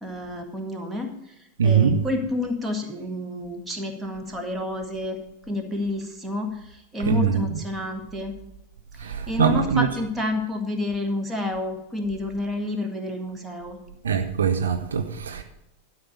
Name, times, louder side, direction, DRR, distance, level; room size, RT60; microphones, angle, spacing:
voice 1, 0.0-1.1 1.6-5.2 5.5-8.3 9.0-13.8, left 2 dB, 10° right, 1.8 m, -29 dB
voice 2, 1.6-2.0 7.1-7.4 9.0-9.9 14.0-15.4, right 7 dB, 65° right, 0.8 m, -22 dB
12.0 x 5.6 x 7.0 m
figure-of-eight pair, 90°, 0 cm